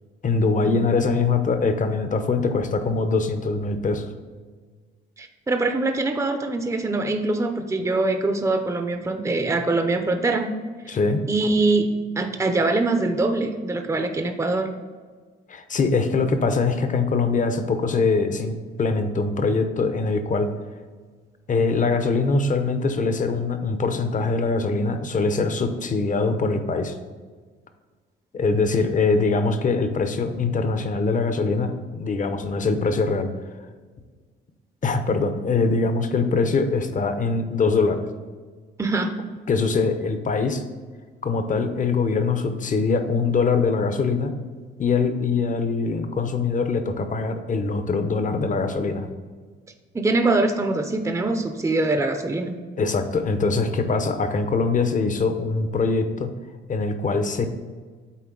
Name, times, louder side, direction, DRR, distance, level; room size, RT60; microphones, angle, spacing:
voice 1, 0.2-4.1 10.9-11.2 15.5-20.5 21.5-26.9 28.3-33.3 34.8-38.1 39.5-40.6 41.2-44.3 44.8-49.1 52.8-56.3 56.7-57.5, left 4 dB, 40° left, 8 dB, 0.8 m, -23 dB
voice 2, 5.2-10.5 11.3-14.7 38.8-39.2 49.9-52.6, right 2 dB, 15° right, 6 dB, 0.7 m, -23 dB
8.5 x 3.9 x 3.9 m, 1.5 s
cardioid pair, 90°, 20 cm